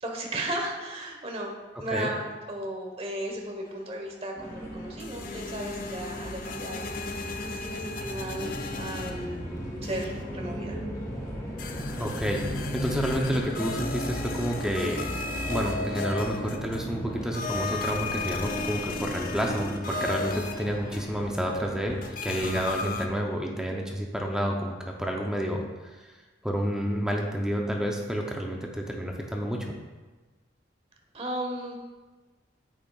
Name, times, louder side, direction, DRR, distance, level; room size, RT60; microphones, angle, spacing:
voice 1, 0.0-9.3 9.8-10.8 31.1-31.8, right 1 dB, 30° right, 1 dB, 1.1 m, -35 dB
voice 2, 1.8-2.1 12.0-15.1 15.5-25.6 26.0-26.1 26.4-29.7, equal, 5° right, 0 dB, 0.6 m, -30 dB
sound 1, 4.3-22.1, equal, 20° left, 1.5 m, -38 dB
sound 2, 5.0-9.5 9.8-10.4 11.6-16.9 17.3-21.4 22.0-23.1, left 3 dB, 50° left, 0.5 m, -35 dB
8.7 x 7.9 x 2.4 m, 1.3 s
head